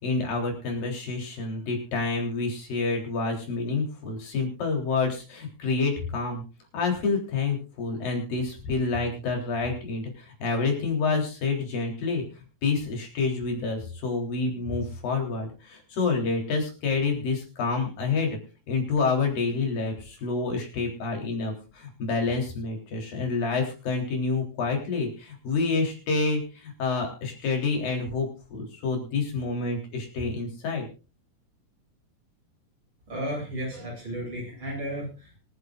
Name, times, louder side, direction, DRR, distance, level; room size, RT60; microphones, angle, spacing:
voice 1, 0.0-6.4 6.7-12.2 12.6-18.4 18.7-30.9, left 4 dB, 90° left, 2 dB, 5.4 m, -28 dB
voice 2, 33.1-35.4, equal, 35° right, -2 dB, 8.9 m, -33 dB
25.0 x 10.5 x 2.5 m, 0.33 s
omnidirectional pair, 3.9 m